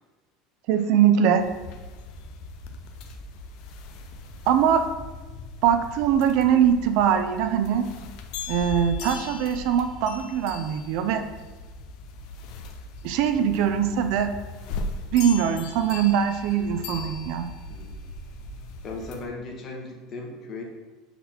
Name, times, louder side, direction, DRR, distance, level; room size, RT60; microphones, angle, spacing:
voice 1, 0.7-1.4 4.5-4.8 5.6-7.9 8.5-11.2 13.0-14.3 15.1-17.5, right 8 dB, 65° right, 9 dB, 0.6 m, -22 dB
sound 1, 1.4-19.2, left 3 dB, 60° left, 0.7 m, -39 dB
voice 2, 17.7-18.0 18.8-20.6, left 3 dB, 40° left, 1 dB, 1.5 m, -37 dB
7.2 x 4.2 x 4.3 m, 1.2 s
supercardioid pair, 120°, 0 cm